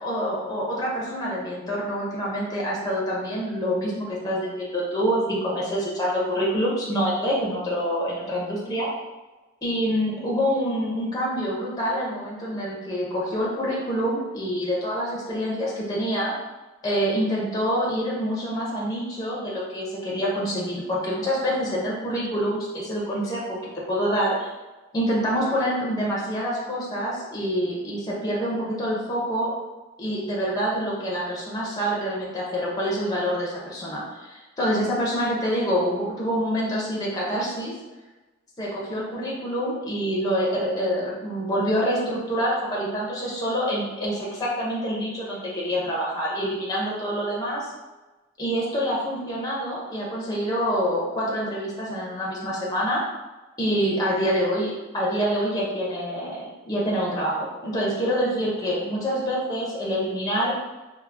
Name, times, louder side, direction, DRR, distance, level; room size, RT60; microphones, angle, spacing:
voice 1, 0.0-8.9 9.6-16.3 16.8-23.6 23.9-24.5 24.9-29.5 30.0-37.7 38.6-47.7 48.4-53.0 53.6-60.5, equal, 20° left, -5 dB, 0.5 m, -26 dB
3.3 x 2.0 x 2.4 m, 1.2 s
head